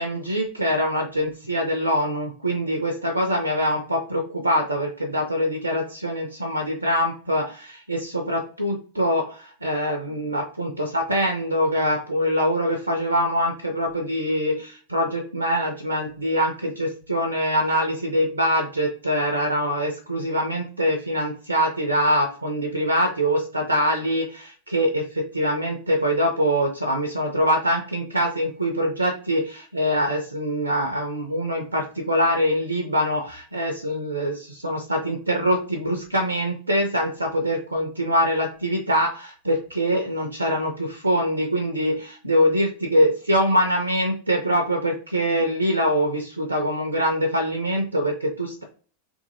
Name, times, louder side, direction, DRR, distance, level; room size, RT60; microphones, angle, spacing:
voice 1, 0.0-48.6, equal, 80° right, 4 dB, 0.4 m, -24 dB
2.7 x 2.5 x 2.6 m, 0.42 s
figure-of-eight pair, 90°, 0 cm